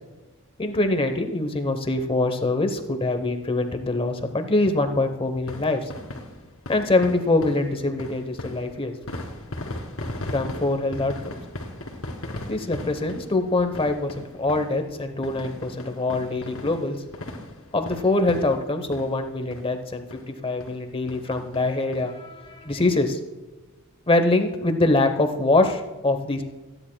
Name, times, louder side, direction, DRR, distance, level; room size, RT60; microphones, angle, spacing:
voice 1, 0.6-5.9 6.7-8.9 10.3-11.3 12.5-17.0 17.7-23.2 24.1-26.4, left 2 dB, 25° left, 7 dB, 0.9 m, -24 dB
sound 1, 5.4-19.2 19.5-19.7 20.1-20.2 20.6-20.8 21.1-22.0 22.4-22.5 22.7-22.8, left 1 dB, 70° left, 2.2 m, -37 dB
27.5 x 10.0 x 2.3 m, 1.2 s
head